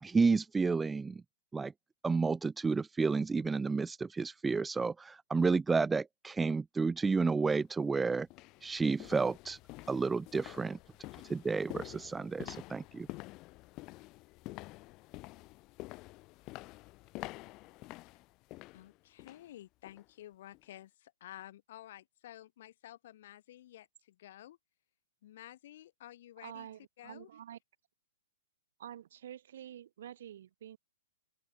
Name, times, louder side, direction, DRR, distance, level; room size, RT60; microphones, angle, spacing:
voice 1, 0.0-1.2 1.5-1.7 2.0-8.3 8.6-9.6 9.9-10.8 11.2-13.1, right 4 dB, 10° right, 0.5 m, -31 dB
sound 1, 7.5-7.7 8.2-19.5 19.9-20.1 20.5-20.6, left 21 dB, 30° left, 3.1 m, -48 dB
voice 2, 18.7-24.6 25.2-26.7 27.0-27.3, left 13 dB, 55° left, 6.0 m, -52 dB
voice 3, 26.4-27.6 28.8-30.8, right 10 dB, 65° right, 4.3 m, -48 dB
open air
hypercardioid pair, 140°, 0 cm